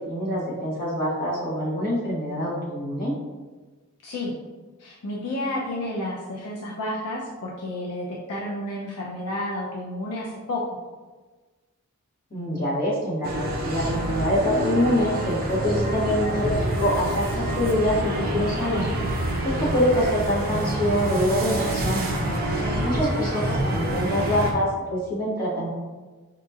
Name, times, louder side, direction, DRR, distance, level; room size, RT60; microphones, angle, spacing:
voice 1, 0.0-3.1 12.3-18.9 19.4-22.0 22.8-25.7, equal, 40° left, -8 dB, 1.4 m, -25 dB
voice 2, 4.0-4.4 4.8-10.8 22.4-22.8, left 1 dB, 80° left, -3 dB, 0.5 m, -31 dB
sound 1, 13.2-24.5, right 1 dB, 40° right, 0.5 m, -27 dB
4.9 x 2.8 x 2.4 m, 1.3 s
head